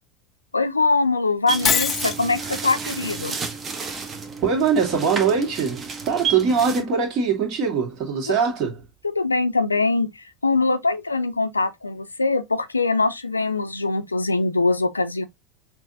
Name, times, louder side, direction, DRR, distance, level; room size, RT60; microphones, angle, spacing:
voice 1, 0.5-3.4 8.3-8.4 9.0-15.2, left 3 dB, 85° left, 0.5 m, -23 dB
sound 1, 1.5-6.8, right 5 dB, 25° right, 1.0 m, -31 dB
Shatter, 1.6-2.2, left 7 dB, 30° left, 0.6 m, -21 dB
voice 2, 4.4-8.8, right 6 dB, 40° right, 2.0 m, -22 dB
6.0 x 2.7 x 2.6 m
figure-of-eight pair, 80°, 0 cm